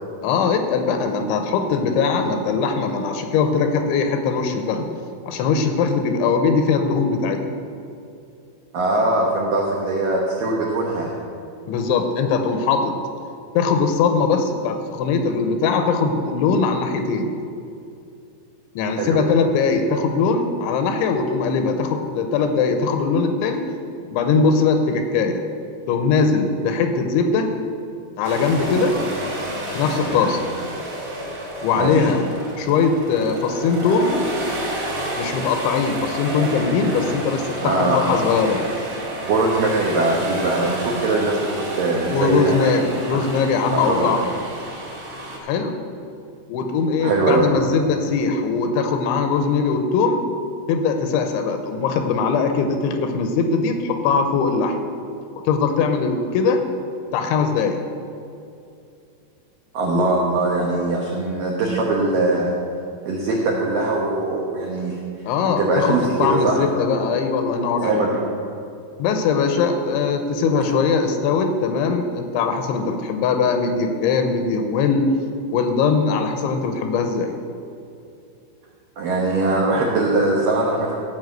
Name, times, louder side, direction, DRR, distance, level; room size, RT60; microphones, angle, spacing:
voice 1, 0.2-4.9 5.3-7.4 11.7-13.0 13.5-17.3 18.8-23.6 24.1-25.4 25.9-27.5 28.2-29.0 29.7-30.4 31.6-32.2 32.6-34.2 35.2-38.7 42.1-44.2 45.4-45.8 46.5-50.2 50.7-54.8 55.5-56.6 57.1-57.8 65.2-68.1 69.0-75.1 75.5-77.3, left 5 dB, 80° left, 6 dB, 3.0 m, -21 dB
voice 2, 8.7-11.2 19.0-19.2 30.0-30.3 31.7-32.1 37.6-38.0 39.2-42.7 43.1-43.3 43.6-44.1 47.0-47.5 59.7-62.5 63.1-65.0 65.6-66.6 67.8-68.3 79.0-80.9, right 2 dB, 75° right, -2 dB, 2.0 m, -21 dB
sound 1, 28.2-45.4, right 1 dB, 40° right, 1.1 m, -31 dB
15.0 x 5.6 x 7.9 m, 2.5 s
omnidirectional pair, 5.6 m